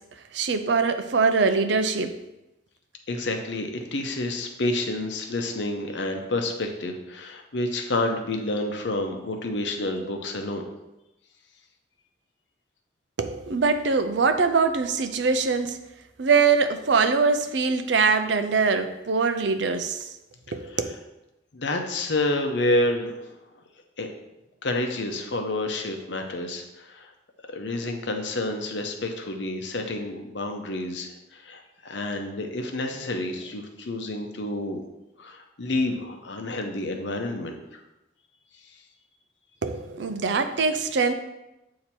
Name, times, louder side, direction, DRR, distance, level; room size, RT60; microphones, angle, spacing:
voice 1, 0.3-2.1 10.0-10.1 13.2-15.8 16.2-20.1 20.5-20.9 39.6-41.1, right 4 dB, 70° right, 9 dB, 0.5 m, -23 dB
voice 2, 3.1-10.6 20.7-20.8 21.5-23.4 24.0-24.1 24.6-27.1 27.5-34.8 35.2-37.8 38.7-38.8, left 2 dB, 75° left, 4 dB, 0.8 m, -29 dB
8.4 x 2.9 x 4.4 m, 0.95 s
head